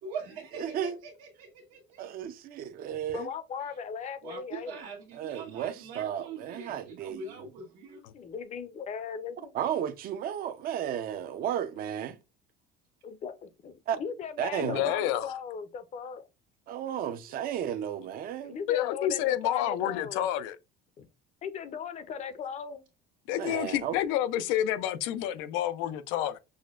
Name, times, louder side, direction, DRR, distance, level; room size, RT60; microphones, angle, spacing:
voice 1, 0.0-1.5 4.2-8.0, right 4 dB, 80° right, 1.3 m, -42 dB
voice 2, 0.5-1.0 2.0-3.3 5.1-7.3 9.5-12.2 13.9-14.0 14.4-14.8 16.7-18.5 23.3-23.9, right 9 dB, 50° right, 0.6 m, -33 dB
voice 3, 3.1-4.8 8.1-9.5 13.0-13.3 13.6-16.3 18.4-20.3 21.0-21.1 21.4-22.8, left 6 dB, 35° left, 0.6 m, -38 dB
voice 4, 14.6-15.3 18.7-20.6 23.3-26.4, left 12 dB, 85° left, 0.5 m, -29 dB
6.3 x 2.1 x 2.4 m
cardioid pair, 135°, 20 cm